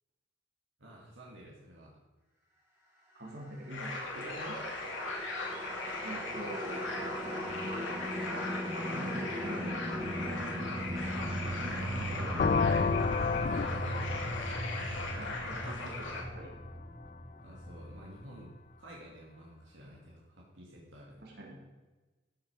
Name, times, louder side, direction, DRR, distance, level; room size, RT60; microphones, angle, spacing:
voice 1, 0.8-2.0 6.4-6.5 6.8-7.8 11.4-12.9 13.2-14.4 17.4-18.5 18.8-21.2, equal, 85° right, -4 dB, 2.3 m, -52 dB
voice 2, 3.1-4.7 6.0-6.8 8.8-10.4 12.0-12.5 15.2-16.5 21.2-21.6, right 1 dB, 55° right, -3 dB, 3.4 m, -45 dB
sound 1, 3.6-18.8, equal, 15° right, 2.5 m, -39 dB
sound 2, 3.7-16.2, left 2 dB, 80° left, 2.5 m, -39 dB
sound 3, 12.4-16.1, left 5 dB, 45° left, 0.3 m, -31 dB
13.5 x 6.5 x 5.1 m, 1.2 s
head